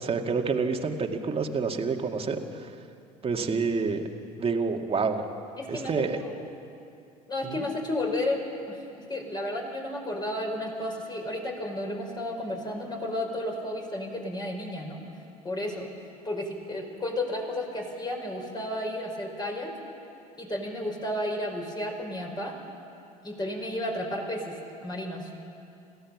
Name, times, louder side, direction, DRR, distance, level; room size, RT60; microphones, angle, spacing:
voice 1, 0.0-2.7 3.2-4.0 4.4-5.2 5.7-6.2 7.4-7.6, right 4 dB, 30° right, 3 dB, 2.3 m, -28 dB
voice 2, 5.6-6.5 7.3-8.4 8.7-15.0 15.4-15.9 16.2-19.7 20.4-22.6 23.2-25.3, left 1 dB, 20° left, 1 dB, 5.8 m, -32 dB
27.5 x 16.0 x 7.5 m, 2.6 s
figure-of-eight pair, 60°, 19 cm